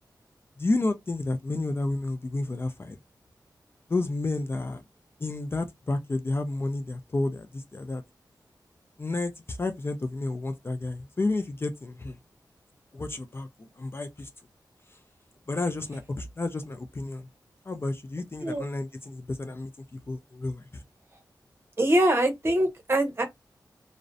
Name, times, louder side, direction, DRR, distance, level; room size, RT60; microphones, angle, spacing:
voice 1, 0.6-3.0 3.9-4.8 5.2-8.0 9.0-12.2 12.9-14.3 15.5-17.3 17.7-20.8, left 2 dB, 30° left, 0.4 m, -31 dB
voice 2, 21.8-23.2, right 1 dB, 35° right, 0.8 m, -23 dB
2.5 x 2.0 x 2.4 m
wide cardioid pair, 85°, 7 cm